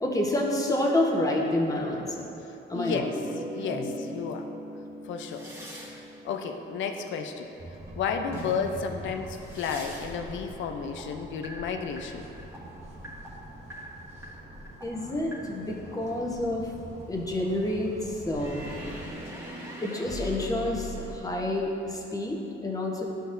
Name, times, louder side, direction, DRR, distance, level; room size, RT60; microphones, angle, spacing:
voice 1, 0.0-2.2 2.7-3.0 3.7-3.9 14.8-16.7 17.1-18.7 19.8-23.0, left 1 dB, 15° left, -1 dB, 1.0 m, -28 dB
voice 2, 2.7-3.1 3.5-4.5 5.0-5.5 5.8-6.0 6.2-7.5 8.0-12.3, left 6 dB, 75° left, 5 dB, 0.5 m, -32 dB
sound 1, 3.0-8.0 8.3-10.2 10.5-16.7 18.3-21.2, equal, 10° right, 1.3 m, -41 dB
sound 2, 7.6-19.2, right 1 dB, 35° right, 1.1 m, -45 dB
11.0 x 3.9 x 2.6 m, 3.0 s
cardioid pair, 90°, 20 cm